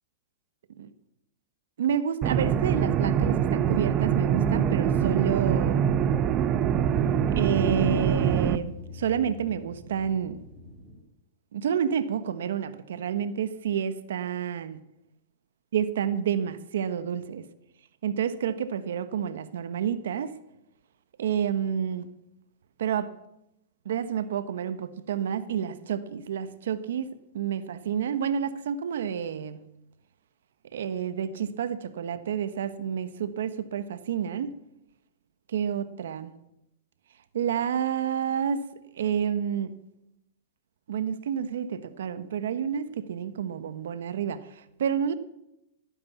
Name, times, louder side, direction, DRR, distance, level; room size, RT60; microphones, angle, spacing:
voice 1, 1.8-5.9 7.3-10.4 11.5-14.8 15.7-17.4 18.0-20.3 21.2-22.1 22.8-23.1 23.8-29.6 30.7-34.5 35.5-36.3 37.3-38.6 38.9-39.7 40.9-45.1, right 8 dB, 80° right, 12 dB, 1.2 m, -29 dB
sound 1, 2.2-8.6, right 8 dB, 30° right, 0.7 m, -24 dB
sound 2, 5.6-11.0, left 3 dB, ahead, 3.2 m, -43 dB
17.5 x 10.0 x 7.1 m, 0.88 s
hypercardioid pair, 150°, 0 cm